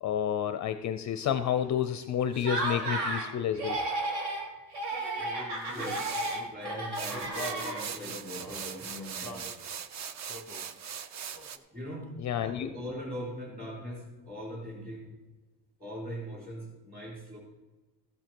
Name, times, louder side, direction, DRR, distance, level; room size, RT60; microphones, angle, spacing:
voice 1, 0.0-3.8 12.2-12.7, left 9 dB, 40° left, 10 dB, 0.4 m, -30 dB
Laughter, 2.3-3.3 3.6-4.4 4.7-8.1, right 2 dB, 65° right, 2.7 m, -33 dB
Male singing, 5.2-9.6 10.3-10.7 11.3-11.6 11.9-12.8, equal, 5° left, 0.9 m, -44 dB
sound 1, 5.6-6.5 6.9-11.6, right 7 dB, 40° right, 0.5 m, -40 dB
voice 2, 5.7-6.1 6.5-9.5 11.7-12.1 12.4-15.1 15.8-17.4, equal, 20° right, -3 dB, 4.2 m, -41 dB
14.5 x 7.8 x 4.5 m, 1.2 s
cardioid pair, 160°, 43 cm